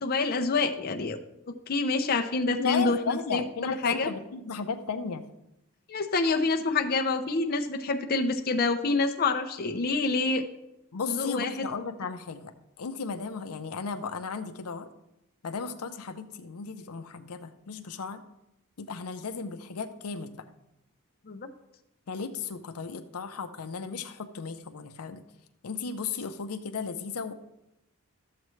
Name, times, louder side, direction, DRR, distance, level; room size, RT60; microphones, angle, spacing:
voice 1, 0.0-1.2 1.7-3.4 3.7-4.1 5.9-10.4 11.1-11.5 21.3-21.5, left 3 dB, 45° left, 4 dB, 0.6 m, -27 dB
voice 2, 2.6-5.2 10.9-14.9 15.4-18.2 18.8-20.5 22.1-25.2 25.6-27.3, left 5 dB, 85° left, 8 dB, 0.6 m, -35 dB
12.0 x 7.5 x 3.1 m, 0.86 s
head